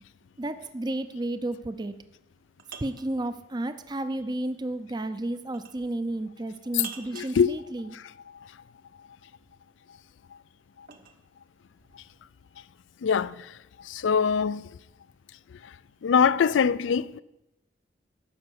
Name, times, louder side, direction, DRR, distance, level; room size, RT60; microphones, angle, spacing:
voice 1, 0.4-2.0 2.8-8.0, right 1 dB, 25° right, 0.5 m, -32 dB
sound 1, 2.1-3.1 5.5-5.9 6.8-7.4 9.7-11.2, right 6 dB, 55° right, 1.0 m, -45 dB
voice 2, 7.1-7.5 13.0-13.5 13.9-14.6 16.0-17.2, left 6 dB, 80° left, 0.4 m, -23 dB
12.0 x 5.3 x 8.0 m
head